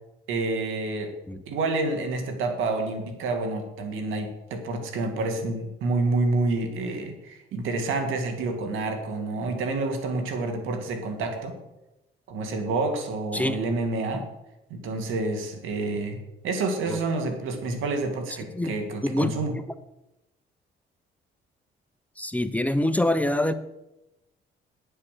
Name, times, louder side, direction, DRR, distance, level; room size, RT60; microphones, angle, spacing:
voice 1, 0.3-1.1 1.5-11.6 12.3-14.3 14.7-16.2 16.4-19.5, right 3 dB, 90° right, 5 dB, 2.1 m, -28 dB
voice 2, 22.2-23.5, left 1 dB, 5° left, 10 dB, 0.7 m, -25 dB
9.8 x 7.7 x 6.6 m, 0.94 s
cardioid pair, 90°, 20 cm